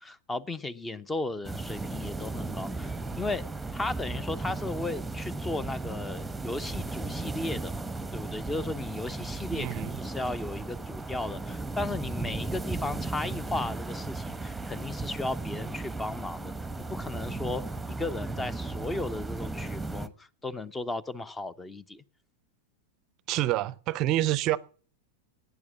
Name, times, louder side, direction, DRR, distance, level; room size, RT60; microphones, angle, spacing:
voice 1, 0.0-3.4 3.7-7.9 8.1-16.5 16.8-17.6 17.9-22.0, left 2 dB, 10° left, 0.8 m, -35 dB
sound 1, 1.4-20.1, right 3 dB, 5° right, 1.1 m, -35 dB
voice 2, 9.5-10.0 23.3-24.6, right 15 dB, 40° right, 0.6 m, -27 dB
17.0 x 9.4 x 7.2 m
figure-of-eight pair, 90°, 0 cm